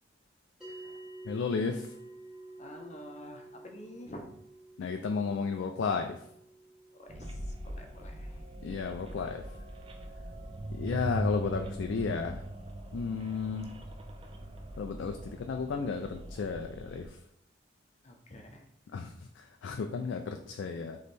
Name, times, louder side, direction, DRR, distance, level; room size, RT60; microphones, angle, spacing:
sound 1, 0.6-11.2, right 2 dB, 5° right, 1.2 m, -51 dB
voice 1, 1.2-1.9 4.8-6.3 8.6-9.4 10.7-12.4 12.9-13.7 14.8-17.2 18.9-21.0, left 5 dB, 75° left, 5 dB, 0.3 m, -33 dB
voice 2, 2.6-4.4 6.9-8.6 9.1-9.3 18.0-18.6 20.3-20.4, left 1 dB, 35° left, 2 dB, 0.6 m, -48 dB
sound 2, 7.1-17.1, right 1 dB, 30° right, 0.4 m, -41 dB
4.2 x 3.1 x 3.3 m, 0.71 s
head